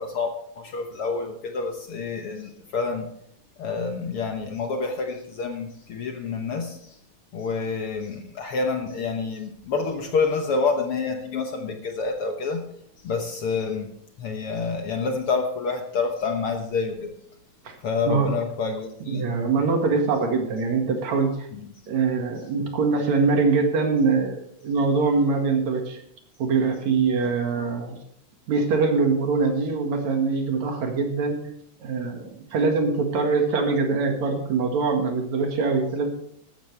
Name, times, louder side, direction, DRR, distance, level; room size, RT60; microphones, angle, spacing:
voice 1, 0.0-3.1 3.6-7.0 7.3-12.6 13.0-17.1 17.8-19.2 21.6-21.7, left 4 dB, 60° left, 4 dB, 1.7 m, -28 dB
voice 2, 19.0-21.5 21.9-26.0 26.4-28.0 28.5-31.4 31.8-36.1, right 4 dB, 70° right, 3 dB, 3.1 m, -23 dB
14.0 x 12.5 x 3.3 m, 0.67 s
omnidirectional pair, 3.4 m